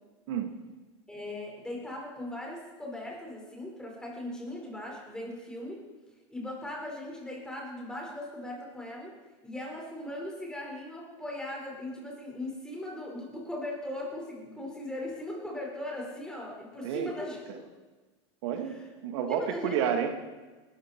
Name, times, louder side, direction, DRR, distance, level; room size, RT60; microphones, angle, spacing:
voice 1, 1.1-5.9 6.3-9.1 9.4-17.7 18.6-18.9 19.3-19.8, left 1 dB, 5° left, -1 dB, 4.9 m, -39 dB
voice 2, 18.4-20.2, right 8 dB, 70° right, 5 dB, 1.8 m, -30 dB
20.0 x 13.0 x 4.5 m, 1.3 s
supercardioid pair, 120°, 15 cm